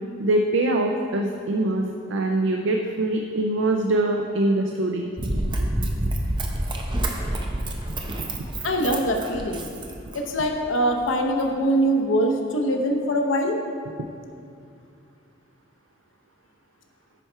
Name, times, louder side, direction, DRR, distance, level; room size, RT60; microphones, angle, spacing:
voice 1, 0.2-5.1 8.3-8.5, right 2 dB, 75° right, 3 dB, 0.5 m, -23 dB
Run, 5.2-10.4 11.0-11.1, right 1 dB, 25° right, 0.7 m, -28 dB
voice 2, 8.6-9.7 10.1-13.6, equal, 90° left, 3 dB, 0.8 m, -23 dB
10.0 x 4.5 x 4.5 m, 2.5 s
head